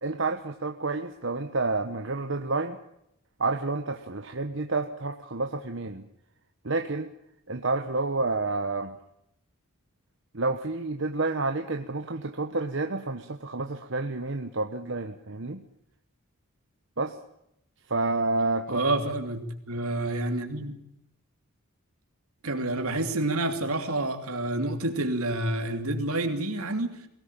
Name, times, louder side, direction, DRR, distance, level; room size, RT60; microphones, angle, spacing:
voice 1, 0.0-2.8 3.4-6.0 6.6-7.1 7.5-9.0 10.3-15.6 17.0-17.1 17.9-18.8, right 3 dB, 55° right, 1.1 m, -29 dB
voice 2, 18.7-20.8 22.4-26.9, right 2 dB, 80° right, 2.9 m, -28 dB
22.5 x 17.5 x 9.0 m
head